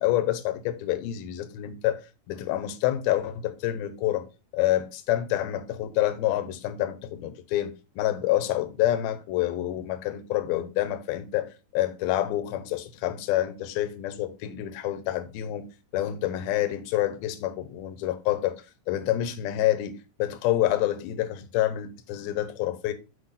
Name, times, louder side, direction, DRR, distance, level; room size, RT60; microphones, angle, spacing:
voice 1, 0.0-2.0 2.3-4.3 4.5-15.7 15.9-18.6 18.9-22.9, left 13 dB, 80° left, 2.6 m, -27 dB
6.3 x 5.3 x 4.0 m
omnidirectional pair, 4.4 m